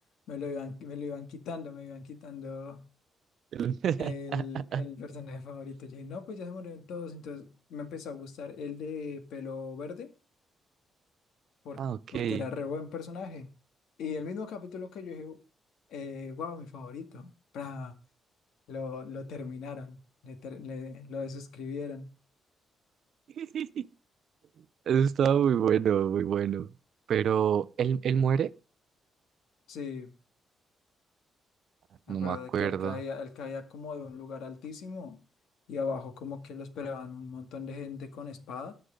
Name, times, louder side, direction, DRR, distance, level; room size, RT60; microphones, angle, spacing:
voice 1, 0.3-2.9 4.0-10.1 11.6-11.8 12.1-13.5 14.0-15.4 15.9-18.0 18.7-22.1 29.7-30.1 32.1-35.2 35.7-38.7, left 5 dB, 85° left, 2.0 m, -39 dB
voice 2, 3.5-4.8 11.8-12.4 23.4-23.9 24.9-26.7 27.1-28.5 32.1-33.0, right 8 dB, 55° right, 0.5 m, -27 dB
19.5 x 6.6 x 3.8 m
cardioid pair, 150°, 0 cm